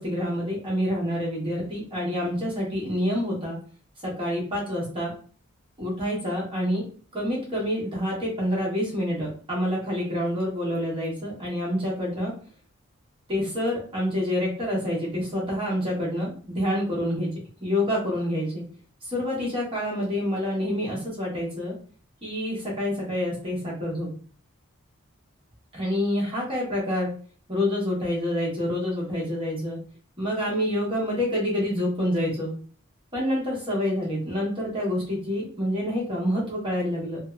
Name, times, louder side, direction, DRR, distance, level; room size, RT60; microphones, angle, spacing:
voice 1, 0.0-3.6 4.0-5.1 5.8-6.8 7.1-12.3 13.3-17.3 17.6-18.6 19.0-21.7 22.2-24.1 25.7-27.1 27.5-29.8 30.2-32.5 33.1-37.2, left 1 dB, 25° right, -6 dB, 1.1 m, -27 dB
2.7 x 2.1 x 2.4 m, 0.43 s
head